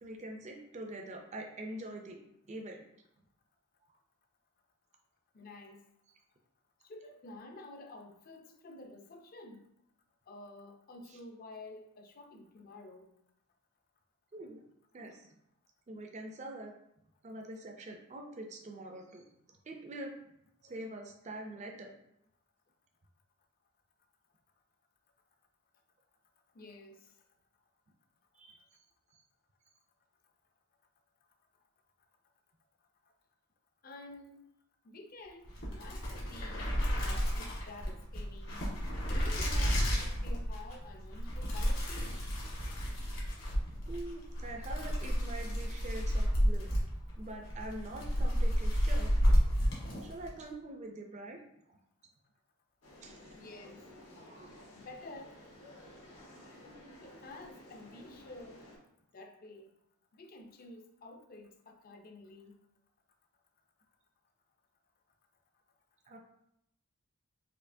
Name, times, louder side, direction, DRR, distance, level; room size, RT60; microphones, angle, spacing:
voice 1, 0.0-2.2 2.5-2.9 14.3-14.6 14.9-15.3 15.9-16.7 17.2-20.1 20.6-21.9 28.3-28.8 43.9-46.7 47.2-49.1 50.0-51.4 51.7-51.8 53.0-53.3 54.2-54.7 66.1-66.2, right 1 dB, 30° right, 2 dB, 0.4 m, -44 dB
voice 2, 5.3-5.9 6.9-9.6 10.3-13.1 26.5-27.1 33.8-34.5 34.8-38.6 39.0-42.3 53.4-53.8 54.7-55.4 57.0-58.7 59.1-59.7 60.1-62.6, left 2 dB, 40° left, 4 dB, 0.4 m, -50 dB
sound 1, 35.4-50.4, equal, 60° left, 1.4 m, -31 dB
sound 2, 52.8-58.8, left 1 dB, 85° left, 1.3 m, -54 dB
4.3 x 2.7 x 2.6 m, 0.77 s
head